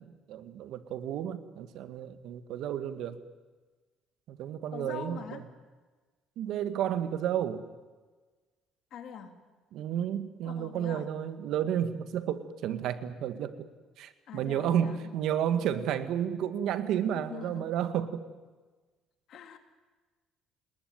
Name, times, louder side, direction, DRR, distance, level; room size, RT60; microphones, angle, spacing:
voice 1, 0.0-3.2 4.3-5.4 6.4-7.6 9.7-13.7 14.0-18.2, right 10 dB, 70° right, 11 dB, 1.8 m, -32 dB
voice 2, 4.7-5.4 8.9-9.3 10.4-11.1 14.3-15.0 17.1-17.6 19.3-19.6, left 7 dB, 60° left, 7 dB, 3.0 m, -43 dB
29.0 x 20.0 x 9.4 m, 1.3 s
cardioid pair, 125°, 0 cm